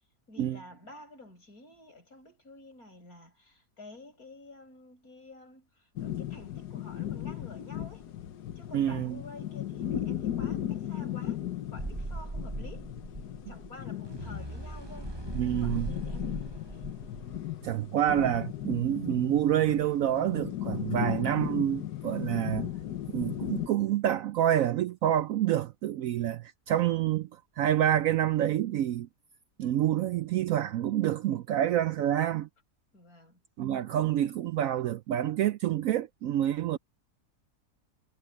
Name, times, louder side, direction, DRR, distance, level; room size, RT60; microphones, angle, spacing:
voice 1, 0.3-8.1 8.5-11.4 11.7-13.0 13.5-15.2 15.4-16.9 32.9-33.4, left 2 dB, 60° left, 8.4 m, -50 dB
sound 1, 6.0-23.7, left 11 dB, 80° left, 1.6 m, -36 dB
voice 2, 8.7-9.2 15.3-15.9 17.6-22.7 23.1-29.1 29.6-32.5 33.6-36.8, right 11 dB, 70° right, 0.8 m, -27 dB
sound 2, 11.8-17.9, right 2 dB, 20° right, 0.7 m, -39 dB
omnidirectional pair, 1.7 m